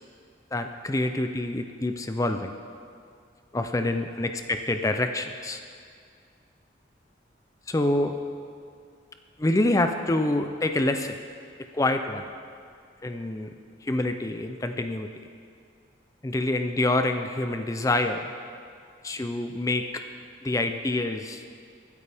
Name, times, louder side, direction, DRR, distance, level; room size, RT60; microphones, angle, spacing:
voice 1, 0.5-2.5 3.5-5.6 7.7-8.2 9.4-11.2 11.7-12.3 13.0-13.5 13.8-15.1 16.2-18.3 19.0-20.0 20.4-21.4, left 2 dB, 20° left, 7 dB, 0.4 m, -26 dB
23.0 x 8.3 x 3.5 m, 2.3 s
head